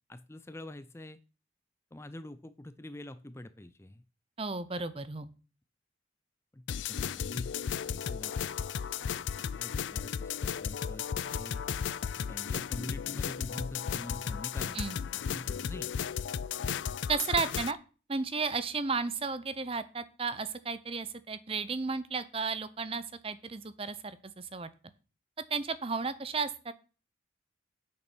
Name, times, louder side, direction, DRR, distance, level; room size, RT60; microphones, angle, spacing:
voice 1, 0.1-1.2 1.9-4.0 6.5-7.5 7.9-8.5 9.1-11.6 12.1-14.8 15.1-15.9, left 1 dB, 15° left, 13 dB, 0.5 m, -45 dB
voice 2, 4.4-5.3 14.7-15.0 17.1-17.8 18.1-24.7 25.5-26.7, right 4 dB, 30° right, 14 dB, 0.6 m, -33 dB
sound 1, 6.7-17.7, left 7 dB, 70° left, 0.4 m, -35 dB
8.9 x 6.8 x 6.1 m, 0.36 s
head